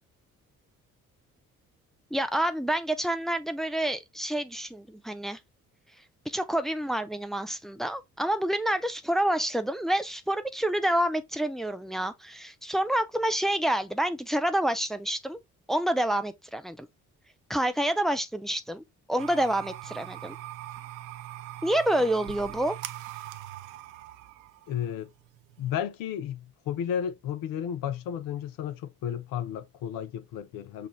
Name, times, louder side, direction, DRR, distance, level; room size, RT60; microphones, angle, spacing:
voice 1, 2.1-5.4 6.3-15.4 15.7-16.9 17.5-20.4 21.6-22.7, right 1 dB, ahead, 0.4 m, -28 dB
sound 1, 19.2-25.8, right 14 dB, 65° right, 0.5 m, -42 dB
voice 2, 24.7-25.1 25.6-30.9, left 9 dB, 50° left, 0.7 m, -33 dB
5.9 x 2.4 x 3.1 m
figure-of-eight pair, 45°, 42 cm